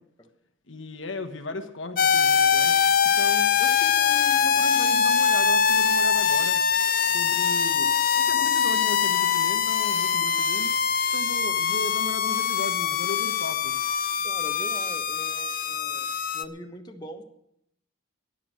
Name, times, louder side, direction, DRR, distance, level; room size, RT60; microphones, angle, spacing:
voice 1, 0.7-2.8 3.1-6.6 7.0-10.7 11.1-13.8, left 2 dB, 70° left, 8 dB, 1.3 m, -36 dB
sound 1, 2.0-16.4, left 7 dB, 45° left, 0.6 m, -23 dB
voice 2, 14.2-17.2, equal, 20° left, 4 dB, 1.1 m, -42 dB
14.0 x 10.5 x 6.4 m, 0.74 s
head